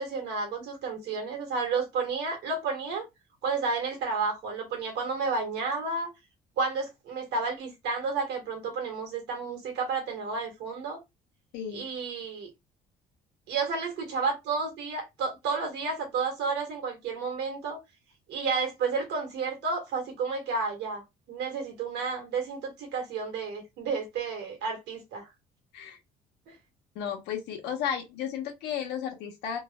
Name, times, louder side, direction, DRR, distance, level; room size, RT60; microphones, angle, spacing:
voice 1, 0.0-3.0 3.4-6.1 6.6-11.0 11.7-12.5 13.5-17.8 18.3-25.3 26.5-26.6, right 4 dB, 85° right, 1.5 m, -31 dB
voice 2, 26.9-29.6, left 8 dB, 90° left, 0.9 m, -33 dB
3.1 x 2.3 x 2.2 m
cardioid pair, 110°, 17 cm